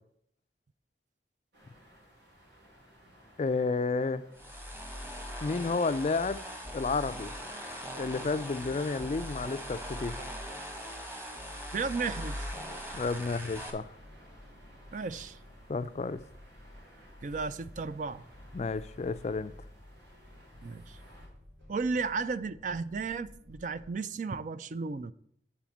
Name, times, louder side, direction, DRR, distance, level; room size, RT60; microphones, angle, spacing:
sound 1, 1.5-21.3, equal, 80° right, 3.3 m, -58 dB
voice 1, 3.4-4.3 5.4-6.4 6.7-7.3 8.0-10.2 12.9-13.9 15.7-16.2 18.5-19.5, left 4 dB, 35° left, 0.3 m, -31 dB
sound 2, 4.3-13.7, equal, 15° right, 1.2 m, -40 dB
sound 3, 10.4-23.9, left 1 dB, 65° right, 3.4 m, -55 dB
voice 2, 11.7-12.4 14.9-15.4 17.2-18.2 20.6-21.0 21.7-25.1, right 4 dB, 45° right, 0.3 m, -34 dB
9.0 x 4.2 x 7.2 m
head